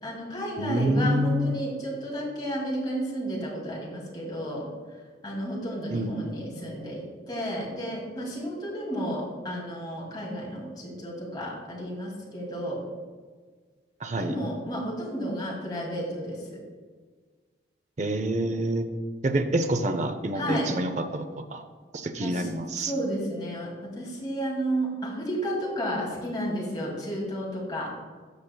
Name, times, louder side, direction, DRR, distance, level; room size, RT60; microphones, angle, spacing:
voice 1, 0.0-4.7 5.2-12.8 14.2-16.6 20.3-20.7 22.2-22.5 22.9-27.9, equal, 25° left, -4 dB, 2.3 m, -32 dB
voice 2, 0.6-1.6 5.9-6.3 14.0-14.3 18.0-18.9 19.2-21.2 21.5-21.6 21.9-22.9, right 1 dB, 40° right, 7 dB, 0.5 m, -27 dB
13.5 x 6.5 x 2.3 m, 1.5 s
head